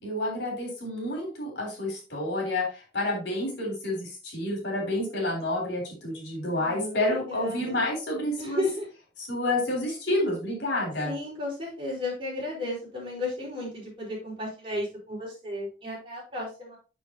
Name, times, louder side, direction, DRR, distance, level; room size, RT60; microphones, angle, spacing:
voice 1, 0.0-8.6 9.2-11.1, left 1 dB, 85° left, 0 dB, 3.7 m, -29 dB
voice 2, 6.6-7.8 8.4-8.8 11.0-16.8, left 1 dB, 30° right, -4 dB, 4.5 m, -34 dB
7.0 x 6.7 x 2.8 m, 0.32 s
head